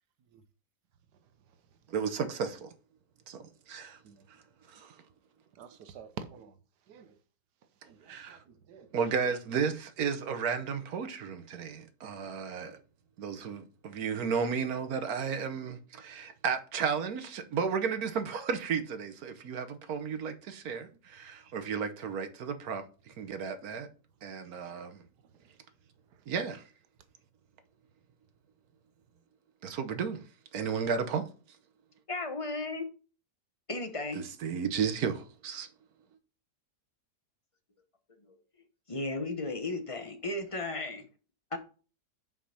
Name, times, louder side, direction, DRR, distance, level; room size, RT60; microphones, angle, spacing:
voice 1, 1.9-2.7 3.3-4.0 4.7-5.0 8.1-8.4 8.9-12.8 13.2-23.9 24.2-25.0 26.3-26.6 29.6-30.2 30.5-31.3 34.2-35.7, right 6 dB, 65° right, 1.4 m, -33 dB
voice 2, 5.6-6.5 6.9-7.1 7.8-8.9, right 7 dB, 85° right, 1.4 m, -47 dB
voice 3, 32.1-32.9 33.7-34.2 38.9-41.0 41.5-41.6, left 2 dB, 25° left, 0.9 m, -34 dB
5.8 x 5.0 x 5.7 m
omnidirectional pair, 1.7 m